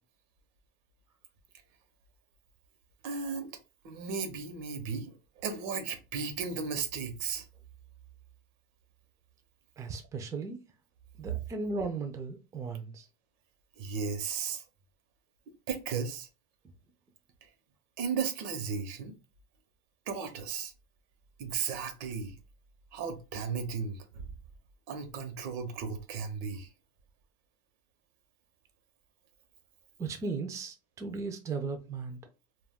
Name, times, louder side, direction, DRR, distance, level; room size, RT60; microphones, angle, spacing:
voice 1, 3.0-3.5 3.8-7.4 11.3-11.4 13.8-14.6 15.7-16.3 17.4-17.5 18.0-19.2 20.1-20.7 21.4-22.3 22.9-24.3 24.9-26.7, right 6 dB, 80° right, 0.8 m, -35 dB
voice 2, 9.8-10.6 11.2-13.1 30.0-32.2, right 4 dB, 15° right, 0.3 m, -36 dB
2.3 x 2.2 x 3.5 m
cardioid pair, 155°, 21 cm